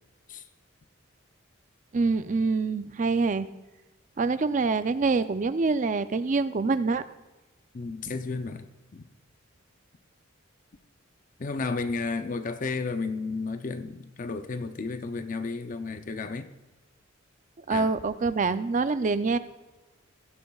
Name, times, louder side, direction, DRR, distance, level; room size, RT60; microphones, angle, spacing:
voice 1, 1.9-3.5 4.2-7.0 17.7-19.4, right 4 dB, 35° right, 0.4 m, -25 dB
voice 2, 7.7-8.7 8.9-9.1 11.4-16.5 17.7-17.9, left 4 dB, 40° left, 0.5 m, -32 dB
16.5 x 11.0 x 2.3 m
head